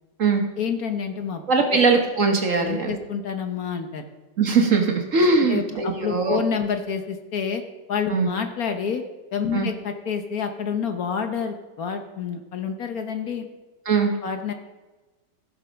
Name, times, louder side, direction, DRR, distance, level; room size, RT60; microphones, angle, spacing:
voice 1, 0.6-1.4 2.6-4.0 5.5-7.6 7.9-9.0 9.3-13.5 14.2-14.5, left 6 dB, 60° left, 6 dB, 1.3 m, -28 dB
voice 2, 1.5-3.0 4.4-6.4 8.1-8.3 9.5-9.7 13.9-14.1, right 4 dB, 50° right, 3 dB, 1.4 m, -20 dB
15.5 x 6.8 x 5.2 m, 1.2 s
omnidirectional pair, 1.9 m